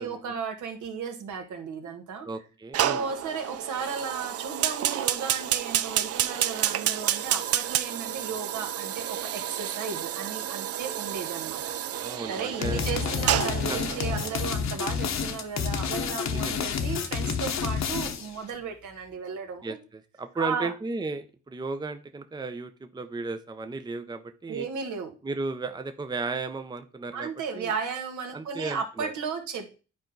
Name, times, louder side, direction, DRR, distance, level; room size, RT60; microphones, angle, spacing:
voice 1, 0.0-2.3 2.8-11.7 12.3-19.8 20.4-20.7 24.5-25.1 27.1-29.7, right 6 dB, 75° right, 5 dB, 1.7 m, -35 dB
voice 2, 2.2-3.0 12.0-12.8 13.7-13.8 16.3-16.7 19.6-24.7 25.2-27.3 27.5-27.7 28.3-29.1, right 3 dB, 15° right, 8 dB, 0.7 m, -34 dB
Fire, 2.7-14.4, right 11 dB, 55° right, 0.5 m, -30 dB
sound 1, 12.6-18.4, left 6 dB, 60° left, 1.2 m, -29 dB
9.5 x 4.5 x 3.9 m, 0.34 s
cardioid pair, 90°, 30 cm